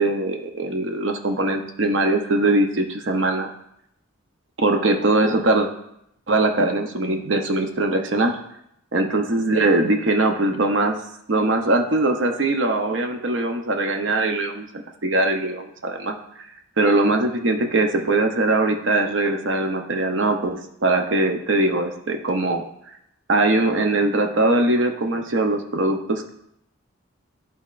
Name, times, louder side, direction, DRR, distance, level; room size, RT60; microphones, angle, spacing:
voice 1, 0.0-3.5 4.6-5.7 6.3-8.4 8.9-11.0 11.3-16.1 16.8-22.6 23.3-26.3, right 2 dB, 65° right, 4 dB, 0.7 m, -21 dB
12.0 x 4.1 x 2.5 m, 0.77 s
head